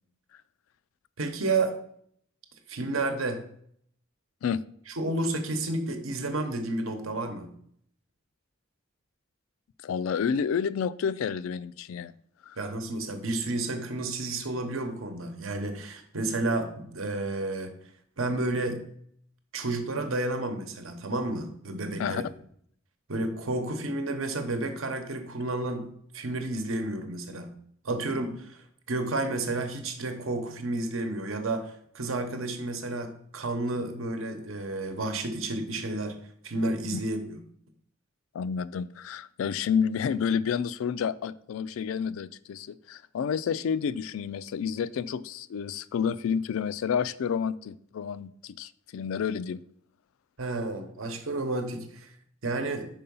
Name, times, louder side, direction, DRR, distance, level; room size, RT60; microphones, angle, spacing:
voice 1, 1.2-1.8 2.7-3.4 5.0-7.5 12.6-17.7 18.2-18.8 19.5-22.2 23.1-25.9 26.1-27.5 27.8-36.1 36.4-37.4 50.4-52.1 52.4-52.9, right 2 dB, 80° right, 7 dB, 1.0 m, -31 dB
voice 2, 9.8-12.1 12.4-12.6 22.0-22.2 36.9-37.0 38.3-49.6, left 7 dB, 80° left, 15 dB, 0.3 m, -30 dB
5.5 x 4.6 x 5.4 m, 0.66 s
head